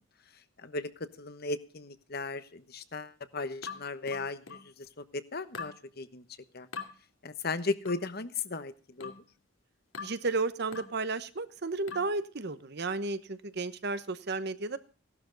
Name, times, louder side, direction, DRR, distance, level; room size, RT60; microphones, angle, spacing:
voice 1, 0.6-0.9 1.2-6.2 6.5-6.7 7.2-9.1, left 3 dB, 55° left, 12 dB, 1.1 m, -36 dB
sound 1, 3.6-4.7 5.5-5.8 6.7-6.9 7.9-8.1 9.0-9.3 9.9-10.2 10.7-11.0 11.9-12.2, left 5 dB, 85° left, 2.6 m, -42 dB
voice 2, 10.0-14.8, right 3 dB, 55° right, 13 dB, 1.0 m, -33 dB
17.0 x 12.0 x 3.9 m, 0.37 s
head